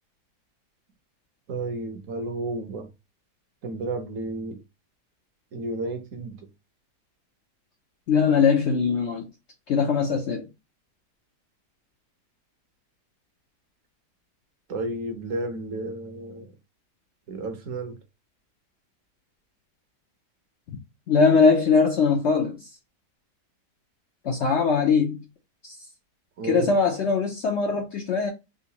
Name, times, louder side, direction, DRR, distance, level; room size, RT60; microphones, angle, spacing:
voice 1, 1.5-2.9 3.6-4.6 5.5-6.5 14.7-16.5 17.3-18.0 26.4-26.7, right 2 dB, 60° right, 1.1 m, -32 dB
voice 2, 8.1-9.2 9.7-10.5 20.7-20.8 21.1-22.6 24.2-25.2 25.6-25.7 26.4-28.3, left 5 dB, 70° left, 0.6 m, -21 dB
3.7 x 2.5 x 2.8 m
omnidirectional pair, 1.8 m